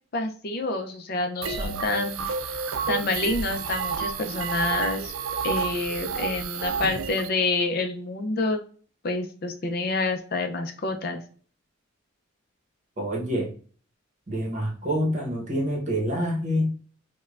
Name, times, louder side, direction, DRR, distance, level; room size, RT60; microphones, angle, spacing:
voice 1, 0.1-2.3 2.9-5.1 5.4-8.6 9.0-11.2, left 2 dB, 50° left, 5 dB, 0.5 m, -28 dB
sound 1, 1.4-7.3, right 6 dB, 85° right, 0.4 m, -30 dB
voice 2, 13.0-13.5 14.3-16.7, equal, 35° right, 0 dB, 0.9 m, -26 dB
5.2 x 2.2 x 2.4 m, 0.43 s
head